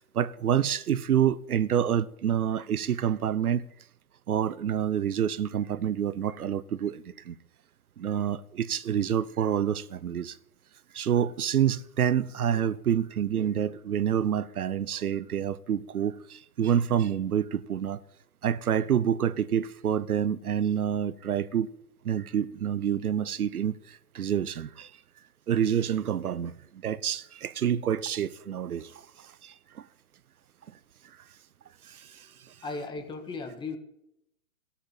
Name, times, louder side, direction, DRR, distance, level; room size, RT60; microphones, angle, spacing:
voice 1, 0.0-3.7 4.3-7.3 8.0-10.4 10.9-18.0 18.4-21.7 22.0-23.8 24.1-24.9 25.5-26.5 26.8-28.9 29.4-29.5 31.9-32.0, right 9 dB, 90° right, 0.8 m, -27 dB
voice 2, 32.6-33.8, left 3 dB, 10° left, 1.5 m, -36 dB
14.0 x 8.6 x 8.7 m
hypercardioid pair, 140°, 43 cm